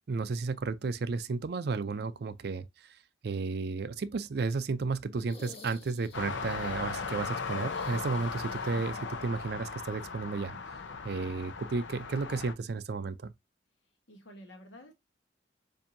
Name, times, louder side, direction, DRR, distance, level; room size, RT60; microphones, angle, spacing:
voice 1, 0.1-2.7 3.2-10.6 11.0-13.3, right 4 dB, 60° right, 0.4 m, -33 dB
sound 1, 5.1-6.5 7.6-8.8 9.1-9.2 10.8-10.9, left 2 dB, 35° left, 1.1 m, -52 dB
sound 2, 6.1-12.5, left 5 dB, 90° left, 0.7 m, -37 dB
voice 2, 11.1-11.5 14.1-14.9, equal, 75° left, 1.2 m, -51 dB
7.1 x 2.7 x 2.6 m
head